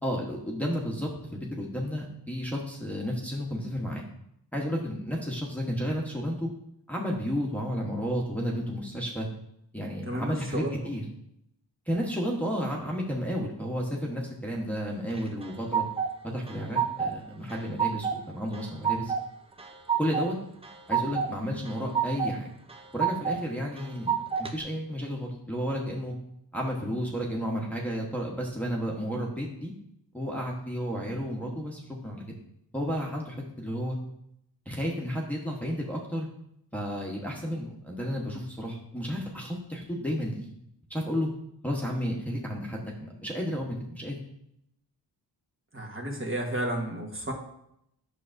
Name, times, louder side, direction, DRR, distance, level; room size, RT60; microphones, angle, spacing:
voice 1, 0.0-4.0 4.5-6.5 6.9-9.3 9.7-11.0 11.9-15.8 16.3-19.1 20.0-20.4 20.9-22.5 22.9-26.1 26.5-29.7 30.1-32.2 32.7-34.0 34.7-36.3 36.7-40.5 40.9-41.3 41.6-44.2, equal, 5° left, -3 dB, 1.1 m, -32 dB
voice 2, 10.1-10.7 45.7-47.3, right 1 dB, 30° right, -1 dB, 1.3 m, -32 dB
sound 1, 15.1-16.1 16.5-17.2 17.5-18.2 18.5-19.2 19.6-20.3 20.6-21.3 21.7-22.3 22.7-23.4 23.8-24.5, right 7 dB, 15° right, 0.5 m, -28 dB
8.3 x 6.2 x 2.6 m, 0.76 s
wide cardioid pair, 95°, 41 cm